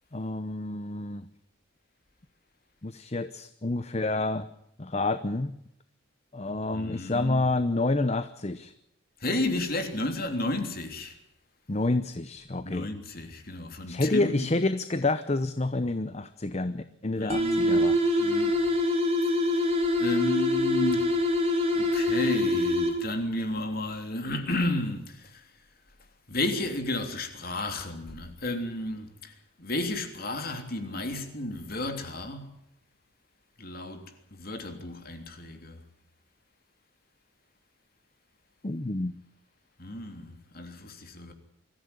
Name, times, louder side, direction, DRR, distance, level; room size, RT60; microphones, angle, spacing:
voice 1, 0.1-1.3 2.8-4.5 4.8-5.5 6.3-8.7 11.7-12.9 13.9-18.0 38.6-39.1, left 2 dB, 30° left, 0.8 m, -28 dB
voice 2, 6.5-7.5 9.2-11.2 12.6-14.5 17.1-17.9 18.2-18.5 19.2-19.4 20.0-21.1 21.7-25.4 26.3-32.5 33.6-34.0 34.3-35.8 39.8-41.3, left 1 dB, 45° left, 3.3 m, -32 dB
sound 1, 17.3-23.2, left 1 dB, 30° right, 4.2 m, -25 dB
23.5 x 14.5 x 9.6 m
head